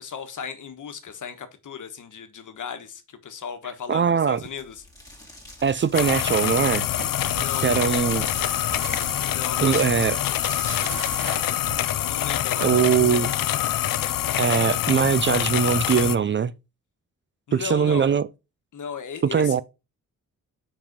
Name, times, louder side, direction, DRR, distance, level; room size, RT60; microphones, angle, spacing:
voice 1, 0.0-4.8 7.3-7.9 9.2-9.9 11.9-13.3 17.5-18.1 18.7-19.6, left 7 dB, 65° left, 1.3 m, -36 dB
voice 2, 3.9-4.4 5.6-6.9 7.6-8.3 9.6-10.2 12.6-13.3 14.4-16.5 17.5-18.3 19.3-19.6, right 7 dB, 35° right, 0.4 m, -21 dB
sound 1, 4.3-11.2, left 1 dB, 10° left, 2.5 m, -42 dB
sound 2, 5.9-16.2, left 13 dB, 85° left, 0.5 m, -25 dB
sound 3, 7.0-12.7, right 8 dB, 85° right, 0.9 m, -40 dB
5.4 x 4.9 x 5.2 m
cardioid pair, 100°, 33 cm